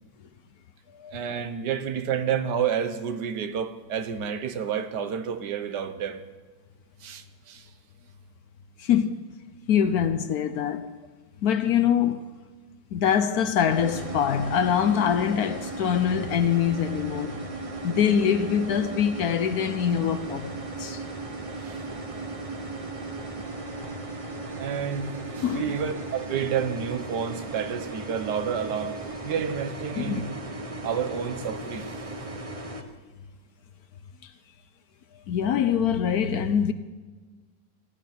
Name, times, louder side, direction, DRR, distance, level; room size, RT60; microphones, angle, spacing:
voice 1, 1.1-6.2 7.0-7.7 21.5-21.8 24.6-28.9 29.2-30.3 30.8-32.0, right 7 dB, 70° right, 1.5 m, -30 dB
voice 2, 8.8-9.2 9.7-10.9 11.4-12.3 12.9-17.4 17.8-21.0 25.4-25.7 30.0-30.2 34.2-34.3 35.3-36.7, left 8 dB, 65° left, 1.1 m, -24 dB
sound 1, 13.7-32.8, right 2 dB, 20° right, 1.0 m, -36 dB
18.5 x 13.5 x 5.8 m
omnidirectional pair, 1.9 m